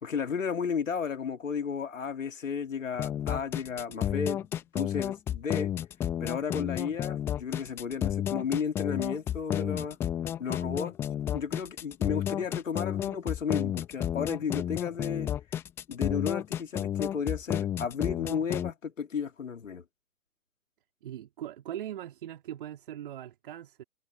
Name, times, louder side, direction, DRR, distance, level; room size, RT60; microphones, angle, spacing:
voice 1, 0.0-4.5 4.7-5.7 6.2-10.0 10.4-11.0 11.3-15.3 15.9-19.8, left 6 dB, 55° left, 2.7 m, -33 dB
sound 1, 3.0-18.7, left 10 dB, 5° left, 1.0 m, -31 dB
voice 2, 21.0-23.8, right 11 dB, 35° right, 3.4 m, -40 dB
figure-of-eight pair, 140°, 47 cm